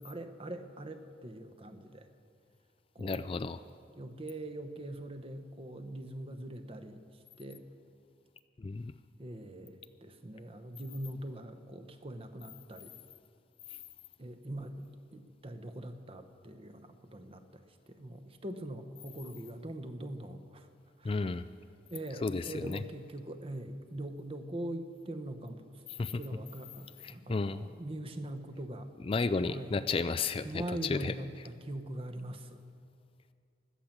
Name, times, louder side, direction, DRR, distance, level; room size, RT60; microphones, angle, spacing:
voice 1, 0.0-2.1 2.9-3.3 4.0-7.0 7.4-7.6 9.2-13.0 14.2-20.7 21.0-21.2 21.9-25.6 26.1-28.9 29.5-29.8 30.4-32.6, right 1 dB, 30° right, 8 dB, 0.9 m, -42 dB
voice 2, 3.0-3.6 8.6-8.9 21.0-21.4 22.2-22.8 26.0-26.2 27.0-27.7 29.0-31.1, left 4 dB, 30° left, 11 dB, 0.3 m, -32 dB
16.5 x 12.0 x 7.3 m, 2.4 s
head